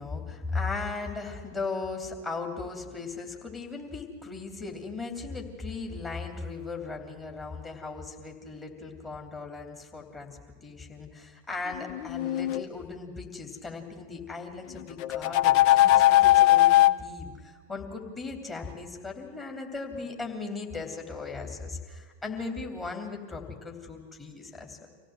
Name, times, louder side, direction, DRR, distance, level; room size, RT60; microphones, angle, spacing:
voice 1, 0.0-24.9, left 4 dB, 20° left, 1 dB, 3.2 m, -37 dB
sound 1, 11.8-12.6 15.0-16.9, left 14 dB, 45° left, 0.5 m, -19 dB
25.5 x 16.5 x 8.0 m, 1.5 s
figure-of-eight pair, 90°, 0 cm